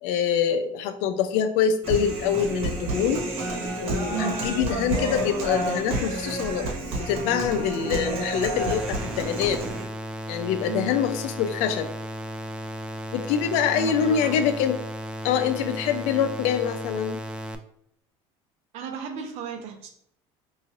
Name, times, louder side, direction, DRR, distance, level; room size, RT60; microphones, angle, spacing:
voice 1, 0.0-3.2 3.8-6.7 7.0-9.6 10.3-11.9 13.1-14.8 15.2-17.2, left 8 dB, 80° left, 9 dB, 0.4 m, -25 dB
Human voice, 1.8-9.8, right 2 dB, 55° right, 1.2 m, -30 dB
sound 1, 8.5-17.5, equal, 10° right, 0.3 m, -35 dB
voice 2, 13.7-14.4 18.7-19.9, right 9 dB, 70° right, 4 dB, 0.7 m, -34 dB
3.1 x 2.5 x 3.8 m, 0.69 s
cardioid pair, 120°, 11 cm